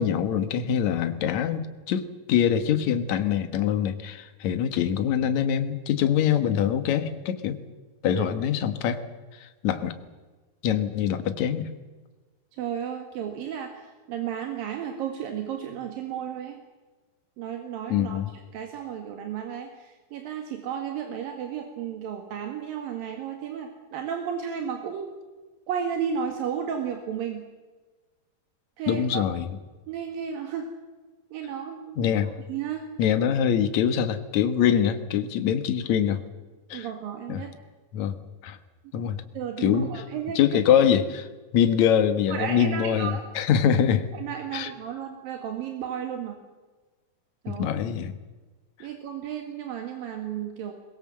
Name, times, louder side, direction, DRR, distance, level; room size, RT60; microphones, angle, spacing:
voice 1, 0.0-7.6 8.0-9.0 9.4-10.0 10.6-11.7 17.9-18.3 28.9-29.5 32.0-32.3 33.0-36.2 36.7-36.9 37.3-37.4 37.9-38.2 38.4-38.6 38.9-39.2 39.6-39.9 40.4-41.3 41.5-44.1 44.5-44.7 47.5-48.1, left 9 dB, 60° left, 10 dB, 2.5 m, -24 dB
voice 2, 12.6-16.6 17.4-18.2 18.5-25.1 25.7-27.4 28.8-29.3 29.9-30.7 31.3-32.1 32.5-32.9 36.7-37.5 39.4-40.4 42.3-43.2 44.1-46.4 47.5-47.7 48.8-50.7, right 8 dB, 80° right, 4 dB, 3.6 m, -33 dB
22.0 x 22.0 x 7.6 m, 1.3 s
omnidirectional pair, 4.0 m